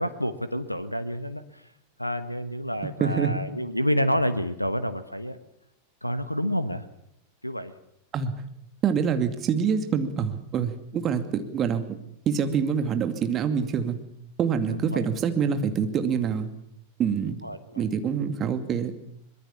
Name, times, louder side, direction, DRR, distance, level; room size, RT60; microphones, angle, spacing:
voice 1, 0.0-1.7 2.0-5.4 6.0-6.9 7.4-7.7 14.7-15.0 17.2-17.9, equal, 90° left, 12 dB, 1.2 m, -29 dB
voice 2, 3.0-3.4 8.1-8.3 8.8-12.0 12.3-14.0 14.4-16.5 17.0-17.4 17.8-18.9, right 7 dB, 30° right, 8 dB, 2.3 m, -26 dB
23.5 x 21.0 x 7.2 m, 0.75 s
figure-of-eight pair, 90°, 0 cm